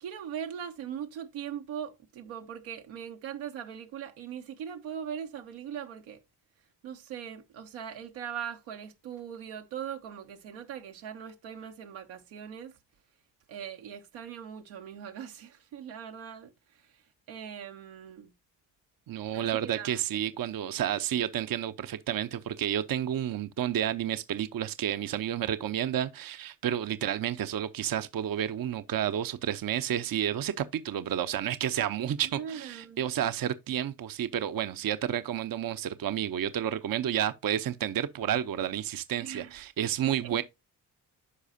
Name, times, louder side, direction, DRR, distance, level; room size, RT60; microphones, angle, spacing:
voice 1, 0.0-6.2 6.8-12.8 13.5-17.0 17.3-18.3 19.3-20.2 32.3-33.1 39.2-39.9 40.2-40.4, right 8 dB, 80° right, 1.1 m, -40 dB
voice 2, 19.1-40.4, right 10 dB, 45° right, 0.8 m, -31 dB
11.5 x 4.8 x 2.6 m
hypercardioid pair, 45°, 47 cm